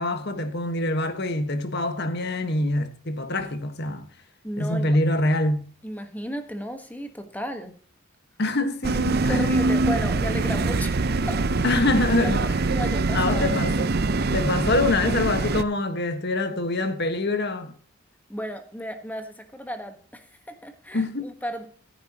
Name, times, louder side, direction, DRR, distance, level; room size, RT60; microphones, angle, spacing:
voice 1, 0.0-4.1 4.6-5.7 8.4-9.5 11.6-12.6 13.1-13.9 14.3-17.7 20.9-21.3, left 2 dB, 50° left, 1.5 m, -25 dB
voice 2, 4.4-5.0 5.8-7.7 9.3-11.0 11.3-11.8 12.1-13.6 18.3-21.7, equal, 10° left, 1.3 m, -34 dB
sound 1, 8.8-15.6, right 3 dB, 45° right, 0.6 m, -24 dB
15.0 x 10.5 x 2.9 m
head